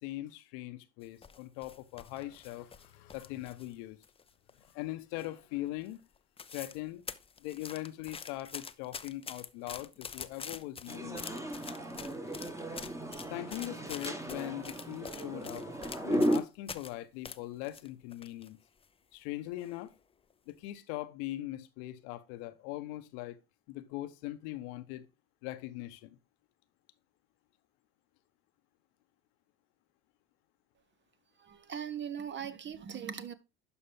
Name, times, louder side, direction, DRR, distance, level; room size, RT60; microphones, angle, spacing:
voice 1, 0.0-4.0 4.5-6.0 6.5-7.0 7.4-11.4 13.3-15.7 16.0-18.6 19.1-19.9 20.5-23.4 23.7-25.1 25.4-26.2, left 16 dB, 70° left, 1.0 m, -41 dB
sound 1, 1.0-3.7 4.0-4.8 5.2-5.5 5.8-5.9 6.2-6.8 7.1-16.9 17.2-18.5 18.8-18.9 19.6-19.9 20.3-20.5, left 5 dB, 15° left, 0.6 m, -46 dB
sound 2, 10.9-16.4, equal, 10° right, 1.4 m, -35 dB
voice 2, 31.4-33.3, right 8 dB, 35° right, 1.0 m, -40 dB
11.5 x 5.2 x 3.4 m
hypercardioid pair, 75°, 33 cm